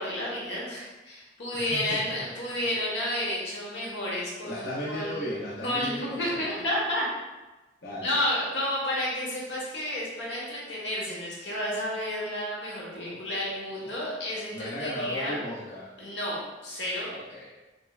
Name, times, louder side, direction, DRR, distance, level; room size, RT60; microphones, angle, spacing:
voice 1, 0.0-5.2 5.6-7.1 8.0-15.4 16.0-17.1, left 1 dB, 85° left, -5 dB, 1.1 m, -31 dB
voice 2, 1.5-2.6 4.5-6.6 7.8-8.1 12.9-13.5 13.8-14.0 14.5-15.9 17.1-17.6, equal, 65° left, -9 dB, 0.7 m, -37 dB
3.5 x 3.2 x 2.3 m, 1.1 s
head